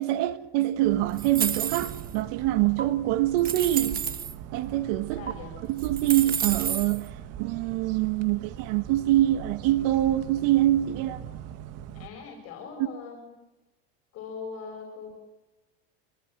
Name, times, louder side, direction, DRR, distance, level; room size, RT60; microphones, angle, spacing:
voice 1, 0.0-4.0 4.5-5.3 5.7-11.2, right 14 dB, 75° right, 1.7 m, -25 dB
sound 1, 0.8-12.1, right 10 dB, 55° right, 1.7 m, -41 dB
sound 2, 1.2-2.1 2.8-2.9 3.4-4.3 5.3-5.4 5.8-7.0, right 8 dB, 30° right, 1.4 m, -31 dB
voice 2, 5.1-5.5 11.9-13.3 14.1-15.2, left 5 dB, 50° left, 6.7 m, -40 dB
25.5 x 20.0 x 7.9 m
cardioid pair, 135°, 30 cm